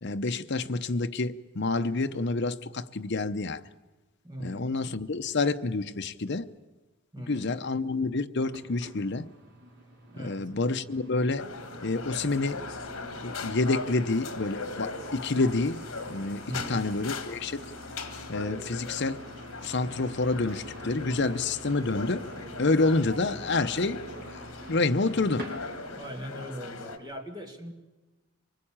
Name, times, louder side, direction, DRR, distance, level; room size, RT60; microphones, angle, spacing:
voice 1, 0.0-3.7 4.4-6.5 7.2-9.3 10.2-11.4 11.8-12.7 13.2-17.6 18.3-19.2 19.6-22.3 22.6-24.0 24.3-24.4 24.7-25.5, left 3 dB, 50° left, 0.8 m, -28 dB
voice 2, 4.2-4.8 7.1-7.6 10.1-10.5 16.5-16.8 25.9-27.7, equal, 20° right, 2.2 m, -40 dB
sound 1, 8.5-26.0, equal, 50° right, 4.8 m, -47 dB
sound 2, 11.4-27.0, left 3 dB, 70° left, 1.9 m, -39 dB
24.0 x 19.5 x 8.8 m
head